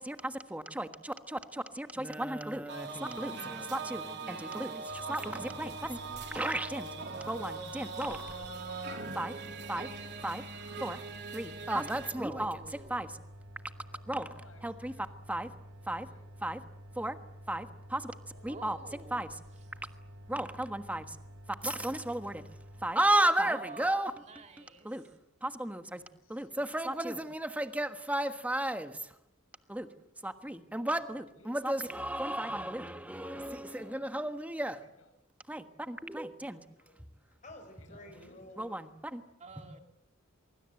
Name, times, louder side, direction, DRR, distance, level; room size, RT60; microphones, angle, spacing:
voice 1, 0.0-6.9 7.3-8.2 9.1-9.3 9.7-9.9 10.2-10.4 10.8-11.0 11.3-12.6 12.9-13.1 14.1-14.3 14.6-14.9 15.3-15.5 15.9-16.1 16.4-16.6 16.9-17.2 17.5-18.1 18.4-18.8 19.1-19.3 20.3-21.2 21.6-22.4 22.8-24.1 24.8-25.0 25.4-26.0 26.3-29.1 29.7-29.9 30.2-34.8 35.5-36.6 38.6-39.2, right 1 dB, 5° right, 8 dB, 1.4 m, -34 dB
sound 1, 2.7-12.1, right 4 dB, 55° right, 3.4 m, -41 dB
sound 2, 4.9-22.9, equal, 85° right, 4.8 m, -50 dB
voice 2, 7.9-9.0 13.9-15.1 15.6-16.3 17.5-17.6 18.3-18.4 25.9-26.5 31.0-31.5 33.2-34.3 35.0-35.1 37.8-38.4, left 2 dB, 80° left, 7 dB, 6.0 m, -59 dB
voice 3, 12.1-13.1 18.5-19.3 23.1-24.9 39.4-39.8, right 3 dB, 35° right, 4 dB, 2.5 m, -48 dB
voice 4, 36.8-38.8, left 1 dB, 40° left, 6 dB, 4.4 m, -52 dB
24.0 x 23.5 x 7.8 m, 0.83 s
head